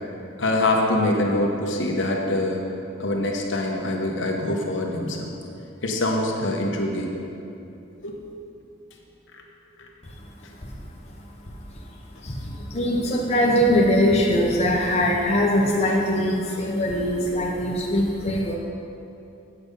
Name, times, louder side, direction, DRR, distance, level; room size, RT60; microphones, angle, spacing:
voice 1, 0.4-2.6 3.0-5.3 5.8-7.1 8.0-8.1, left 1 dB, 65° left, 0 dB, 1.1 m, -24 dB
voice 2, 12.2-18.6, equal, 30° left, -2 dB, 0.9 m, -22 dB
8.4 x 6.8 x 5.3 m, 2.7 s
head